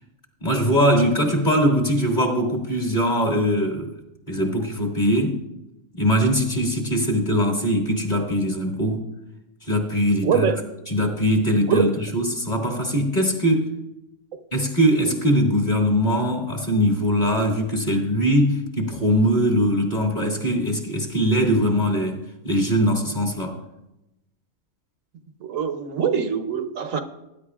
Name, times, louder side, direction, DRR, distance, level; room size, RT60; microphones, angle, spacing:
voice 1, 0.4-4.0 4.3-5.4 5.9-9.1 9.6-10.5 10.9-13.7 14.5-23.6, equal, 35° left, 0 dB, 2.0 m, -21 dB
voice 2, 10.2-10.6 11.7-11.9 25.4-27.0, right 7 dB, 75° right, 9 dB, 1.2 m, -23 dB
20.0 x 10.0 x 2.4 m, 0.91 s
omnidirectional pair, 1.4 m